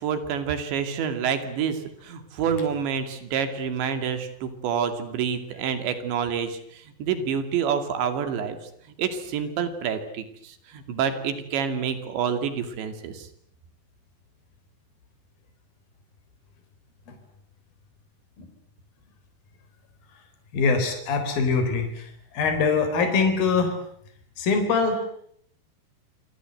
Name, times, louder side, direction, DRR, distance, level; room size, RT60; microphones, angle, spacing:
voice 1, 0.0-8.6 8.9-13.3, right 7 dB, 75° right, 9 dB, 4.7 m, -28 dB
voice 2, 20.5-23.8 24.4-25.1, left 4 dB, 55° left, 6 dB, 5.7 m, -23 dB
27.0 x 25.5 x 7.9 m, 0.67 s
omnidirectional pair, 5.2 m